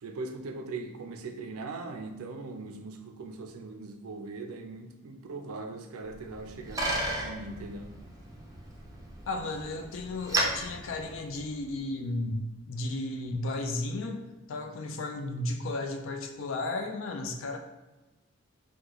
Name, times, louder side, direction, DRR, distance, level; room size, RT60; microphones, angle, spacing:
voice 1, 0.0-6.9 7.2-7.9, right 3 dB, 80° right, 5 dB, 0.4 m, -40 dB
Bicycle, 6.1-11.8, right 1 dB, 15° right, 0.4 m, -35 dB
voice 2, 9.3-14.2 14.5-17.6, left 2 dB, 60° left, 5 dB, 0.4 m, -34 dB
3.0 x 2.2 x 3.7 m, 1.0 s
head